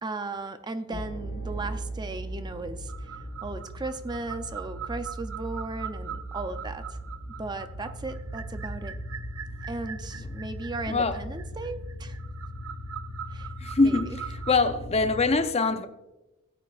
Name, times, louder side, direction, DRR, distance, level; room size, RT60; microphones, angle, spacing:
voice 1, 0.0-7.0 7.4-9.0 9.7-12.2 13.3-13.5 13.8-14.2, right 3 dB, 20° right, 0.5 m, -36 dB
sound 1, 0.9-15.3, equal, 75° left, 1.6 m, -38 dB
sound 2, 2.9-14.5, right 9 dB, 80° right, 0.7 m, -42 dB
voice 2, 13.6-15.9, left 3 dB, 30° left, 0.6 m, -24 dB
17.0 x 8.4 x 2.4 m
head